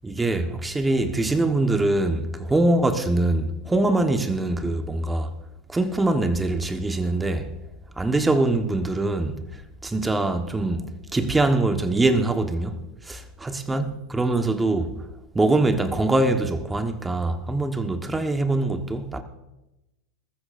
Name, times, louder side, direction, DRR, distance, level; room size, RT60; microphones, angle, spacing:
voice 1, 0.0-5.3 5.7-7.5 8.0-9.4 9.8-10.9 11.1-12.8 13.1-14.9 15.3-19.2, right 2 dB, 10° right, 1.3 m, -23 dB
20.0 x 14.0 x 2.6 m
hypercardioid pair, 105°, 0 cm